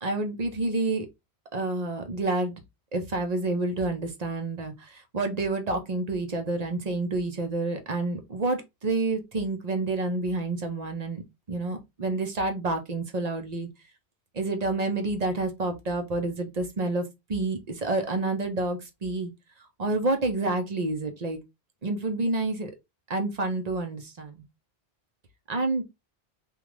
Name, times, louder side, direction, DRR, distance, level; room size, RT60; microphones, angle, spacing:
voice 1, 0.0-1.1 1.5-2.6 2.9-11.2 11.5-13.7 14.3-17.0 17.3-19.3 19.8-21.4 21.8-22.7 23.1-24.4 25.5-25.8, right 2 dB, 45° right, 0.8 m, -28 dB
3.7 x 2.4 x 3.1 m
omnidirectional pair, 1.1 m